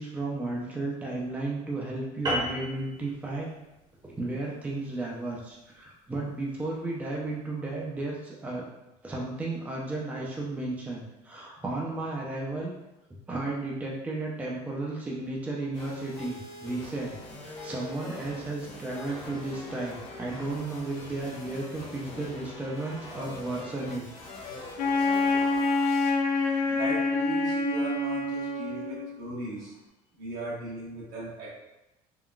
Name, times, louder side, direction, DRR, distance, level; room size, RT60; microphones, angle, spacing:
voice 1, 0.0-3.5 4.0-8.6 9.0-12.7 13.3-17.2 17.4-24.0, right 2 dB, 10° right, -3 dB, 0.5 m, -34 dB
sound 1, 2.3-7.0, right 1 dB, 25° right, 0.9 m, -36 dB
sound 2, 15.7-26.1, left 2 dB, 40° left, 1.0 m, -43 dB
Wind instrument woodwind instrument, 24.8-29.2, left 3 dB, 65° left, 0.5 m, -26 dB
voice 2, 26.7-29.7 30.2-31.5, equal, 75° right, -7 dB, 1.4 m, -36 dB
3.7 x 2.2 x 2.3 m, 0.95 s
cardioid pair, 125°, 15 cm